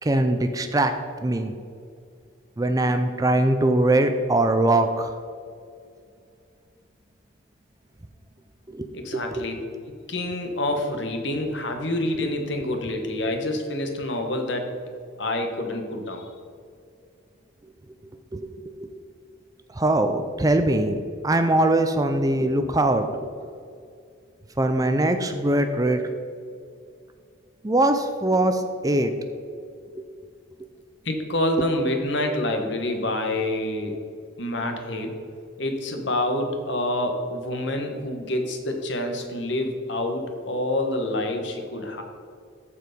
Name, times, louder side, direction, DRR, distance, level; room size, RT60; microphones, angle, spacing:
voice 1, 0.0-0.9 1.2-1.5 2.6-5.1 8.7-8.9 9.1-9.5 18.3-18.9 19.7-23.1 24.6-26.0 27.6-29.1 29.9-30.0, right 1 dB, 20° right, 8 dB, 0.5 m, -22 dB
voice 2, 8.9-9.5 10.1-14.7 15.2-16.3 31.0-34.0 34.4-35.1 35.6-42.0, left 1 dB, 60° left, 4 dB, 1.4 m, -27 dB
14.0 x 4.8 x 5.1 m, 2.3 s
head